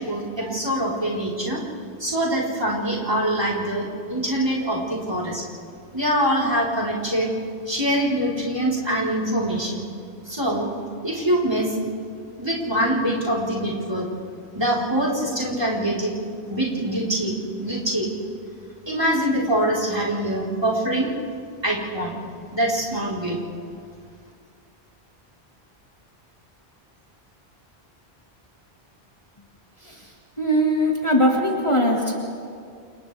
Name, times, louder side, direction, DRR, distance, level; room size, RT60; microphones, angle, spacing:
voice 1, 0.0-1.6 2.0-5.4 5.9-7.3 7.7-9.9 10.3-10.7 11.0-11.7 12.3-14.1 14.5-16.2 16.5-18.1 18.9-21.1 21.6-22.2 22.5-23.4, right 1 dB, 25° right, -6 dB, 4.3 m, -24 dB
voice 2, 30.4-32.2, equal, 30° left, -2 dB, 2.1 m, -20 dB
30.0 x 28.5 x 3.5 m, 2.3 s
omnidirectional pair, 1.1 m